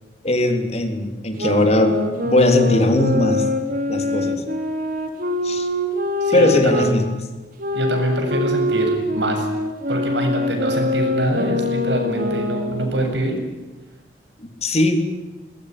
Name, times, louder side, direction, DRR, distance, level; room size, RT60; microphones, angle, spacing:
voice 1, 0.2-2.0 2.2-3.4 3.9-4.4 5.4-5.7 6.3-7.0 14.6-15.1, left 1 dB, 40° left, 6 dB, 3.8 m, -19 dB
sound 1, 1.4-6.9 7.6-13.1, left 2 dB, 55° right, 4.1 m, -24 dB
voice 2, 6.2-7.0 7.7-9.5 9.9-13.3, right 1 dB, 80° right, 4 dB, 7.7 m, -24 dB
22.0 x 21.0 x 10.0 m, 1.2 s
head